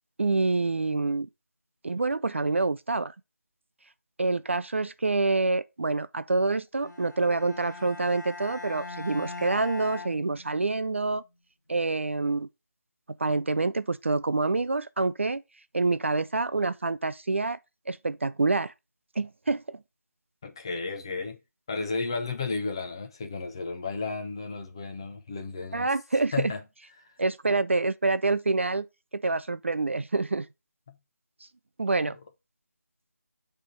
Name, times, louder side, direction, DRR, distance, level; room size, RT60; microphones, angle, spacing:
voice 1, 0.2-1.3 1.8-3.1 4.2-11.2 11.7-12.5 13.2-15.4 15.7-17.6 17.9-18.7 19.2-19.8 25.7-26.5 27.2-28.9 29.1-30.5 31.8-32.2, right 3 dB, 45° right, 0.4 m, -27 dB
Bowed string instrument, 6.8-10.9, left 4 dB, 90° left, 1.1 m, -41 dB
voice 2, 20.4-21.4 21.7-25.9 26.3-26.6 27.0-27.1 30.9-31.0, left 4 dB, 15° left, 0.5 m, -33 dB
8.3 x 3.4 x 4.6 m
figure-of-eight pair, 165°, 9 cm